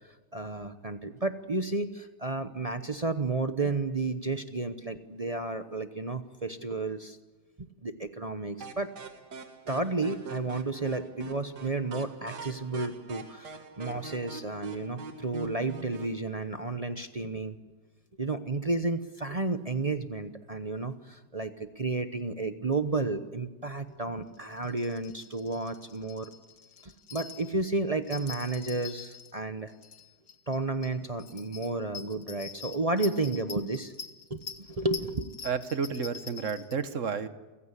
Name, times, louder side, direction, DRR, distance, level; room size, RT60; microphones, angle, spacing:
voice 1, 0.3-7.2 7.8-8.9 9.7-17.5 18.2-26.3 26.8-29.7 30.5-33.9 34.3-35.3, right 3 dB, 30° right, 9 dB, 0.8 m, -32 dB
sound 1, 8.6-16.2, right 4 dB, 75° right, 2.2 m, -43 dB
sound 2, 24.4-27.5 28.0-29.3 29.7-30.6 30.8-30.9 31.2-36.7, left 6 dB, 55° left, 1.9 m, -45 dB
voice 2, 35.4-37.3, right 6 dB, 50° right, 12 dB, 1.4 m, -31 dB
29.0 x 16.0 x 9.9 m, 1.2 s
omnidirectional pair, 1.8 m